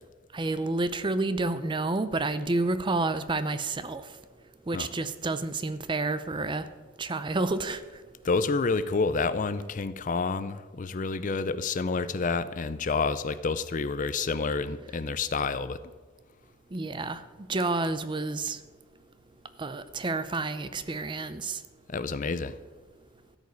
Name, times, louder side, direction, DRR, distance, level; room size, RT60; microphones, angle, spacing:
voice 1, 0.3-4.1 4.7-6.7 7.0-7.8 16.7-17.2 17.5-18.6 19.6-21.6, right 2 dB, 25° right, 0.5 m, -29 dB
voice 2, 8.2-15.8 21.9-22.6, left 4 dB, 40° left, 0.5 m, -29 dB
13.0 x 5.3 x 9.2 m
head